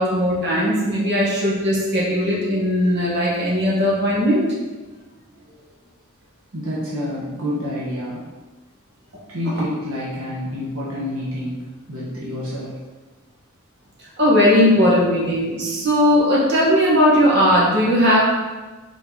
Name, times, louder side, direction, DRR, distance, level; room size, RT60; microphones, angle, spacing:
voice 1, 0.0-4.4 9.5-9.6 14.2-18.2, equal, 50° right, -6 dB, 1.9 m, -18 dB
voice 2, 6.5-8.2 9.3-11.6 11.9-12.7, left 1 dB, 80° right, -7 dB, 1.3 m, -28 dB
5.3 x 4.6 x 4.0 m, 1.3 s
head